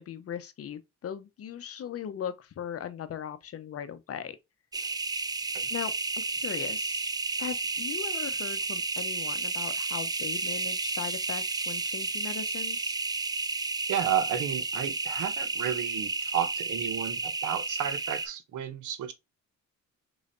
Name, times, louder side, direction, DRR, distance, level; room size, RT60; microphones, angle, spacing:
voice 1, 0.0-4.4 5.7-7.0 7.4-13.0, left 9 dB, 50° left, 0.7 m, -38 dB
sound 1, 4.7-18.3, right 3 dB, 15° right, 0.3 m, -32 dB
voice 2, 13.9-19.1, right 9 dB, 80° right, 0.9 m, -32 dB
3.9 x 3.2 x 2.5 m
cardioid pair, 90°, 30 cm